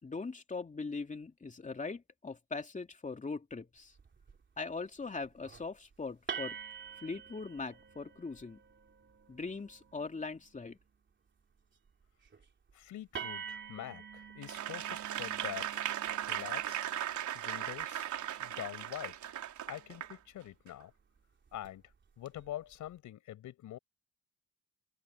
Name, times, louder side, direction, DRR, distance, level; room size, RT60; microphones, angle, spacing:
voice 1, 0.0-3.9 4.6-6.6 7.0-8.6 9.3-10.8, left 4 dB, 25° left, 2.9 m, -41 dB
sound 1, 4.0-4.4 5.2-5.7 6.3-10.6 12.3-12.4 12.7-12.8 13.1-20.2 21.5-21.7 22.3-22.7, right 7 dB, 40° right, 3.5 m, -48 dB
voice 2, 12.7-15.9 16.3-16.8 17.3-18.1 18.4-19.2 19.7-20.9 21.5-21.8 22.2-23.8, left 12 dB, 80° left, 5.2 m, -45 dB
Applause / Crowd, 14.4-20.1 20.7-20.8, right 11 dB, 75° right, 4.1 m, -37 dB
open air
cardioid pair, 90°, 30 cm